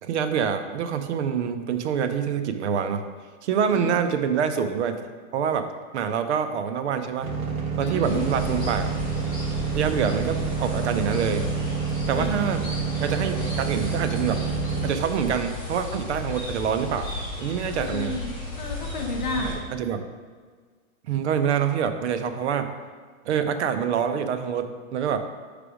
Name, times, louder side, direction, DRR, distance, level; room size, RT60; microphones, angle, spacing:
voice 1, 0.0-3.0 3.4-5.0 5.3-5.7 5.9-7.3 7.8-8.9 9.7-11.5 12.1-12.6 13.0-14.4 14.8-18.2 19.4-20.1 21.1-22.7 23.3-25.2, right 7 dB, 55° right, 8 dB, 0.5 m, -26 dB
sound 1, 7.2-14.9, right 6 dB, 75° right, 1.3 m, -28 dB
voice 2, 7.8-8.2 12.1-12.5 17.7-18.3 18.6-19.6, left 2 dB, 35° left, 3 dB, 0.4 m, -32 dB
sound 2, 8.0-19.5, left 2 dB, 10° left, 1.4 m, -34 dB
6.0 x 3.3 x 4.8 m, 1.5 s
hypercardioid pair, 160°, 42 cm